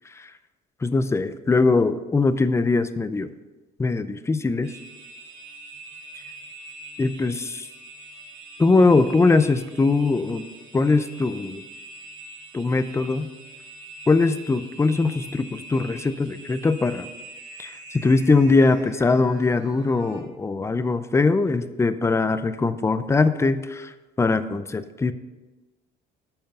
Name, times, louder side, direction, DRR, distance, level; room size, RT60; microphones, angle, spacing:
voice 1, 0.8-3.3 3.8-4.7 7.0-7.7 8.6-10.4 10.7-11.6 12.5-13.3 14.1-17.1 17.6-23.9 24.2-25.1, left 3 dB, 15° left, 12 dB, 0.5 m, -21 dB
sound 1, 4.6-20.2, right 2 dB, 60° right, 2.0 m, -43 dB
8.8 x 5.6 x 6.7 m, 1.2 s
cardioid pair, 120°, 21 cm